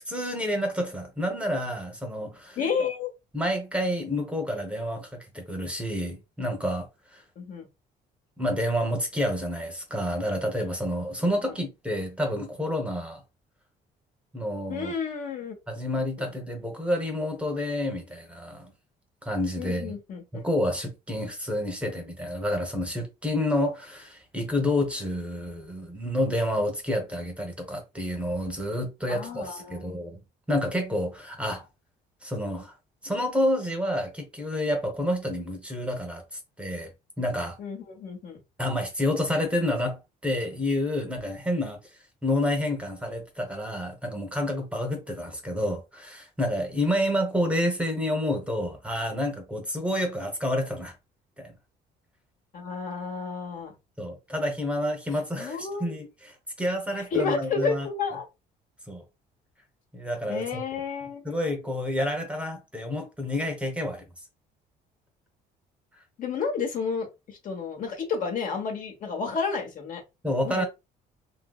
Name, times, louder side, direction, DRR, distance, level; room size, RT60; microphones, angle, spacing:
voice 1, 0.1-2.6 3.3-7.2 8.4-13.2 14.3-14.9 15.7-18.7 19.2-19.9 20.3-30.2 30.5-31.7 32.2-32.7 33.0-36.9 37.2-37.6 38.6-41.8 42.2-50.9 51.4-51.5 54.0-57.9 58.9-59.0 59.9-60.6 61.2-64.1 70.2-70.6, left 1 dB, 5° right, 0.8 m, -29 dB
voice 2, 2.6-3.1 7.4-7.7 14.7-15.5 16.2-16.3 19.6-20.5 29.1-29.9 37.6-38.4 52.5-53.7 55.4-55.9 57.0-58.2 60.3-61.3 66.2-70.0 70.4-70.6, left 5 dB, 55° left, 1.1 m, -31 dB
2.9 x 2.6 x 2.3 m
cardioid pair, 110°, 17 cm